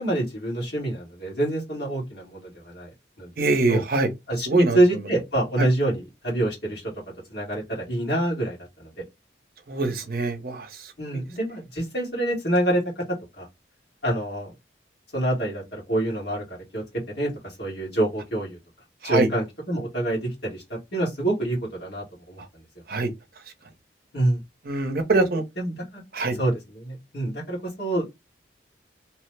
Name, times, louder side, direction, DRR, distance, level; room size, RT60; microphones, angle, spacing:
voice 1, 0.0-2.9 3.2-3.3 3.7-3.8 4.3-6.9 7.3-8.9 11.0-12.8 13.4-13.5 14.0-14.5 15.1-18.6 19.0-20.6 20.9-22.4 24.1-24.4 25.6-26.0 26.4-28.0, right 1 dB, 65° left, 1.5 m, -26 dB
voice 2, 3.4-4.1 4.5-4.8 5.6-5.7 9.7-10.9 19.0-19.3 22.9-23.1 24.7-25.4 26.1-26.4, right 3 dB, 55° right, 0.7 m, -23 dB
3.1 x 2.0 x 3.2 m
head